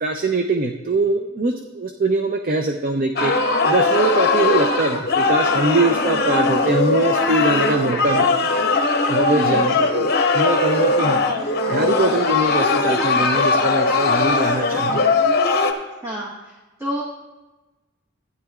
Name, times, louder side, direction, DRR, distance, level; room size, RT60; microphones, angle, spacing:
voice 1, 0.0-3.3 3.6-8.5 9.1-11.2 11.7-15.0, right 2 dB, 45° right, 5 dB, 0.5 m, -22 dB
sound 1, 3.2-15.7, left 3 dB, 50° left, 0.8 m, -19 dB
voice 2, 9.3-9.6 16.0-17.0, right 1 dB, 15° right, -6 dB, 1.1 m, -30 dB
15.0 x 9.5 x 2.4 m, 1.1 s
head